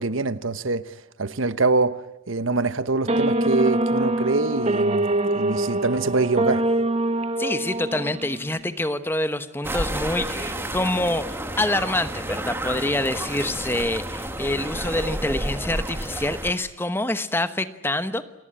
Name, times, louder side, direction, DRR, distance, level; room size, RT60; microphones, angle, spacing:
voice 1, 0.0-6.7, right 3 dB, 85° right, 1.2 m, -24 dB
sound 1, 3.0-8.6, right 1 dB, 30° right, 1.3 m, -24 dB
voice 2, 7.4-18.2, left 1 dB, 10° left, 1.1 m, -26 dB
sound 2, 9.6-16.5, right 1 dB, 10° right, 1.8 m, -30 dB
28.5 x 19.5 x 9.9 m
head